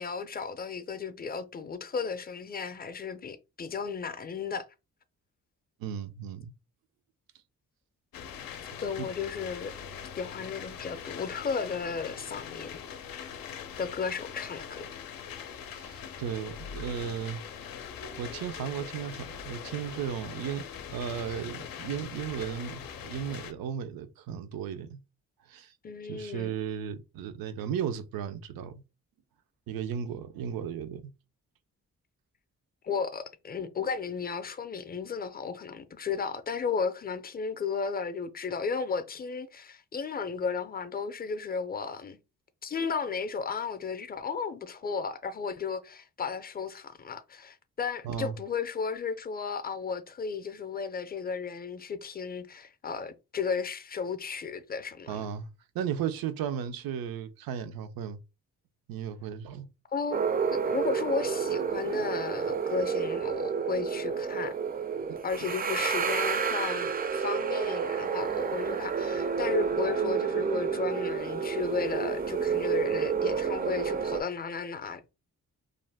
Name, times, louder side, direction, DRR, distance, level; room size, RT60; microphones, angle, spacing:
voice 1, 0.0-4.7 8.8-9.7 10.2-12.8 13.2-13.3 13.8-14.9 25.8-26.6 32.8-42.2 42.6-55.2 59.9-64.5 65.2-75.1, left 5 dB, 25° left, 0.5 m, -34 dB
voice 2, 5.8-6.5 9.0-9.1 15.7-17.4 18.2-20.6 20.9-25.0 25.5-25.7 26.1-28.8 29.7-31.1 48.0-48.4 55.1-55.5 55.7-58.2 58.9-59.7 65.1-65.2, right 8 dB, 85° right, 0.5 m, -35 dB
sound 1, 8.1-23.5, left 7 dB, 85° left, 0.5 m, -42 dB
sound 2, 60.1-74.2, right 6 dB, 30° right, 0.4 m, -30 dB
2.5 x 2.1 x 3.3 m
cardioid pair, 60°, 34 cm